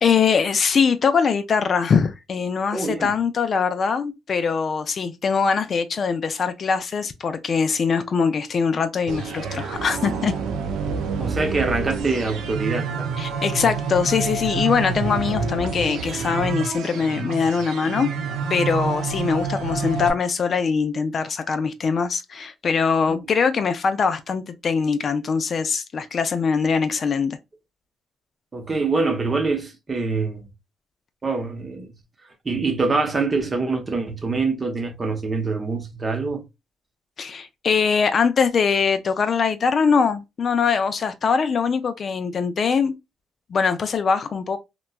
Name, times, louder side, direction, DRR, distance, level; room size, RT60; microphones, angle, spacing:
voice 1, 0.0-10.3 13.2-18.1 18.5-27.4 37.2-42.9 43.5-44.6, left 5 dB, 50° left, 0.4 m, -22 dB
voice 2, 2.7-3.1 11.2-13.1 23.1-23.2 28.5-30.5 31.2-31.9 32.4-36.4, right 3 dB, 30° right, 0.7 m, -25 dB
sound 1, 9.1-20.1, right 5 dB, 85° right, 0.4 m, -28 dB
2.9 x 2.2 x 2.2 m
cardioid pair, 90°, 0 cm